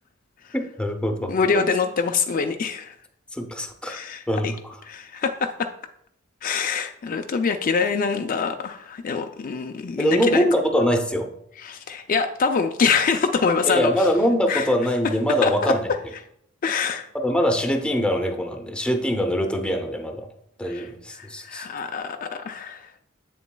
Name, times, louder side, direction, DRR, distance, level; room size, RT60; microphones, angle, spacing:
voice 1, 0.5-1.3 3.3-4.0 4.3-4.8 10.0-11.3 13.7-15.9 17.2-20.3 20.6-21.7, equal, 5° left, 3 dB, 0.6 m, -23 dB
voice 2, 1.3-2.9 3.9-4.5 4.9-5.7 6.4-10.4 11.6-14.1 14.5-14.7 15.4-15.7 16.6-17.1 20.7-20.9 21.2-23.0, left 5 dB, 45° left, 6 dB, 0.4 m, -25 dB
7.9 x 7.1 x 2.2 m, 0.72 s
head